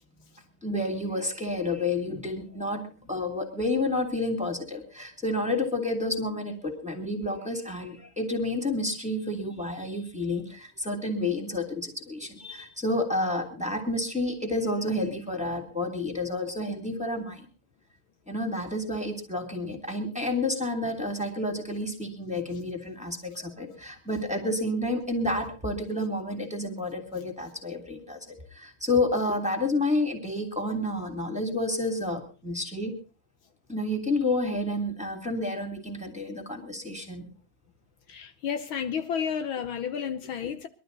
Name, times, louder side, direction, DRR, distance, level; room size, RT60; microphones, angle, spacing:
voice 1, 0.6-17.5 18.3-32.9 33.7-37.3 40.4-40.5, left 2 dB, 5° right, 2.7 m, -30 dB
voice 2, 38.1-40.7, left 7 dB, 70° left, 1.7 m, -31 dB
22.0 x 12.5 x 4.0 m
omnidirectional pair, 2.4 m